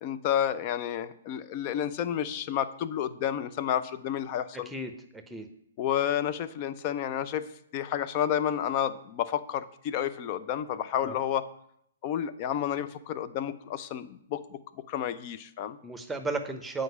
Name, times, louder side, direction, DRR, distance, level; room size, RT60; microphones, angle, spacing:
voice 1, 0.0-4.7 5.8-7.5 7.7-11.5 12.0-14.6 14.9-15.8, left 10 dB, 40° left, 14 dB, 0.6 m, -30 dB
voice 2, 4.7-5.5 11.0-11.1 15.8-16.8, right 3 dB, 5° right, 8 dB, 0.9 m, -34 dB
7.8 x 5.1 x 7.0 m, 0.72 s
figure-of-eight pair, 125°, 0 cm